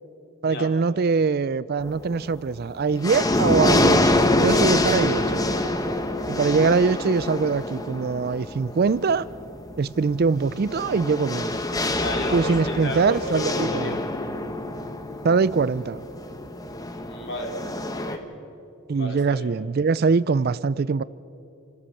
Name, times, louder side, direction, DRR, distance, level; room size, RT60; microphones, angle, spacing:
voice 1, 0.4-5.4 6.3-9.3 9.8-11.6 12.3-13.9 15.2-16.0 18.9-21.0, right 4 dB, 45° right, 19 dB, 0.4 m, -23 dB
sound 1, 1.8-2.3 2.7-18.2, left 1 dB, 15° left, 1.0 m, -26 dB
voice 2, 12.0-14.0 17.0-17.6 17.9-18.2 19.0-19.5, left 1 dB, 55° left, 2 dB, 2.9 m, -33 dB
28.5 x 13.0 x 7.1 m, 2.8 s
head